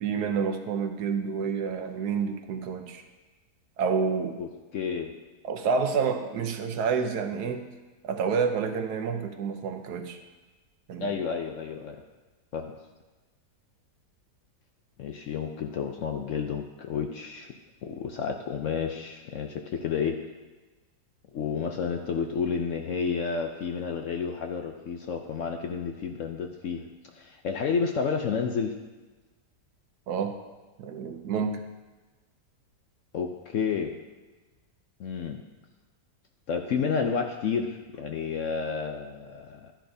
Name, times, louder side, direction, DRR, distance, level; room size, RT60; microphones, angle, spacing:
voice 1, 0.0-3.0 3.8-4.4 5.4-7.7 8.0-10.2 10.9-11.2 30.1-30.4 30.8-31.6, right 5 dB, 70° right, 6 dB, 1.3 m, -29 dB
voice 2, 4.7-5.1 11.0-12.0 12.5-12.7 15.0-17.5 17.8-20.2 21.3-26.8 27.1-28.7 33.1-33.9 35.0-35.4 36.5-39.7, left 6 dB, 65° left, 4 dB, 0.8 m, -30 dB
11.5 x 10.5 x 2.7 m, 1.2 s
omnidirectional pair, 1.8 m